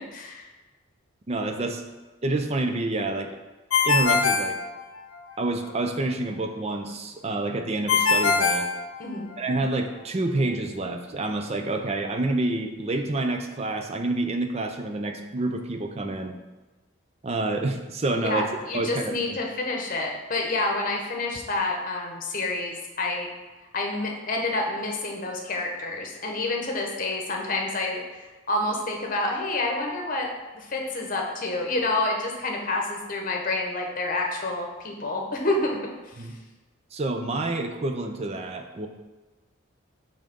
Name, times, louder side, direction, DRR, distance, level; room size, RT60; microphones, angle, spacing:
voice 1, 0.1-0.5 9.0-9.4 18.2-23.3 23.7-30.3 30.5-35.7 36.1-36.3, left 2 dB, 40° left, 1 dB, 0.9 m, -28 dB
voice 2, 1.3-1.8 2.2-3.4 3.8-4.6 5.4-8.7 9.4-16.3 17.2-18.5 18.7-19.4 36.2-36.4 36.9-38.9, right 2 dB, 30° right, 5 dB, 0.5 m, -28 dB
Ringtone, 3.7-5.3 7.9-9.5, left 4 dB, 70° left, 0.6 m, -23 dB
5.5 x 3.8 x 5.2 m, 1.2 s
head